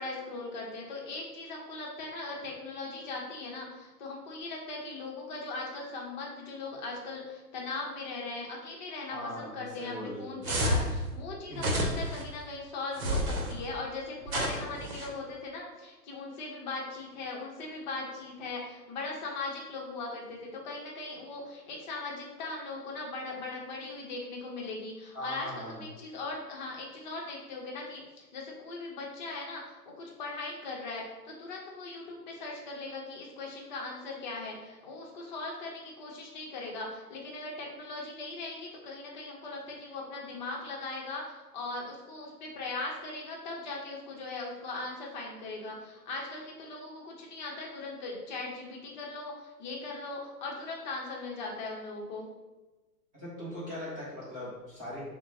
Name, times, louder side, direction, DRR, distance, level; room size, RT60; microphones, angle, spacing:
voice 1, 0.0-52.3, left 3 dB, 30° left, -1 dB, 0.8 m, -39 dB
voice 2, 9.1-10.4 11.5-11.6 25.1-25.8 53.2-55.0, left 1 dB, 10° right, -9 dB, 0.6 m, -40 dB
sound 1, 10.4-10.9 11.6-12.2 13.0-13.5 14.3-15.1, equal, 60° right, 1.0 m, -29 dB
5.8 x 2.2 x 2.6 m, 1.1 s
figure-of-eight pair, 125°, 49 cm